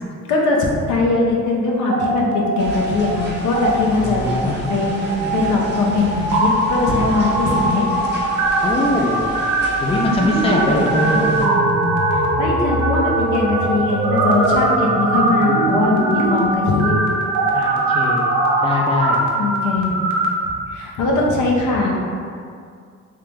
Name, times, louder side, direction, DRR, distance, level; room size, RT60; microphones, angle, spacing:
voice 1, 0.9-4.9 5.3-7.9 12.1-17.1 19.4-20.0 20.4-22.0, left 3 dB, 75° left, -2 dB, 0.8 m, -20 dB
sound 1, 1.8-3.2 3.4-3.7 4.2-20.3, right 2 dB, 75° right, 0.7 m, -20 dB
sound 2, 2.6-11.5, right 1 dB, 35° right, 0.8 m, -33 dB
voice 2, 3.9-5.4 8.6-9.2 9.8-11.3 15.5-15.6 17.5-18.3 18.6-19.2, left 2 dB, 20° left, -1 dB, 0.5 m, -22 dB
3.3 x 2.9 x 3.4 m, 2.2 s
cardioid pair, 90°, 30 cm